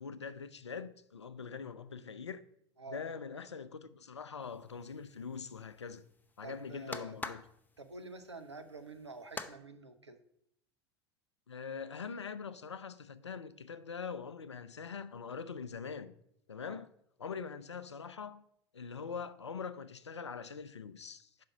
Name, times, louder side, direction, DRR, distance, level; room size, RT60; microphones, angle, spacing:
voice 1, 0.0-2.4 2.9-6.0 6.4-7.4 11.5-16.1 16.5-16.9 17.2-18.4 18.7-21.4, left 6 dB, 85° left, 0.4 m, -43 dB
sound 1, 4.4-9.5, left 3 dB, 15° left, 0.5 m, -47 dB
voice 2, 6.4-7.1 7.8-10.2 16.7-16.8, right 3 dB, 90° right, 0.6 m, -48 dB
5.6 x 4.9 x 5.9 m
figure-of-eight pair, 80°, 14 cm